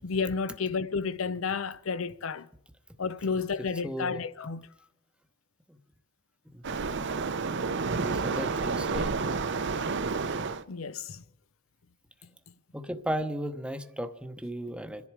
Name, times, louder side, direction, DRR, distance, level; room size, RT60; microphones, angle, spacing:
voice 1, 0.0-2.5 3.0-4.7 10.7-11.2, left 5 dB, 75° left, 0.6 m, -31 dB
voice 2, 3.8-4.2 5.7-5.8 6.5-6.6 8.0-9.1 12.7-15.1, right 1 dB, 5° right, 0.9 m, -35 dB
Waves surf, 6.6-10.6, right 4 dB, 60° right, 0.8 m, -30 dB
27.5 x 10.5 x 4.8 m
head